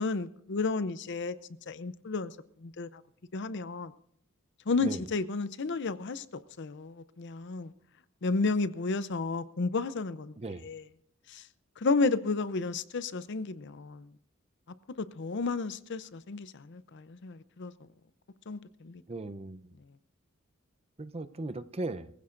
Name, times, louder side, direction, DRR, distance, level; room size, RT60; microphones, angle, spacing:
voice 1, 0.0-1.3 1.7-3.0 3.3-3.9 4.7-7.7 8.2-10.3 10.6-10.8 11.3-11.5 11.8-14.1 15.0-17.7 18.5-19.0, left 3 dB, 60° left, 0.6 m, -32 dB
voice 2, 19.1-19.7 21.0-22.1, right 2 dB, 30° right, 0.6 m, -37 dB
22.0 x 15.5 x 2.5 m
head